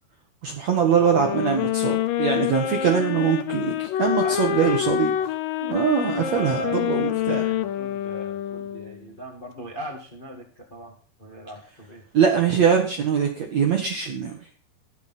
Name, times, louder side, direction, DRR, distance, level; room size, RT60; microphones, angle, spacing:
voice 1, 0.4-5.1 5.6-7.4 12.1-14.4, right 7 dB, 65° right, 3 dB, 1.7 m, -22 dB
sound 1, 1.1-9.1, left 11 dB, 85° left, 1.9 m, -27 dB
voice 2, 4.2-5.3 6.2-6.8 7.2-12.0, right 2 dB, 30° left, 0 dB, 0.9 m, -38 dB
21.0 x 7.0 x 4.2 m, 0.42 s
omnidirectional pair, 5.1 m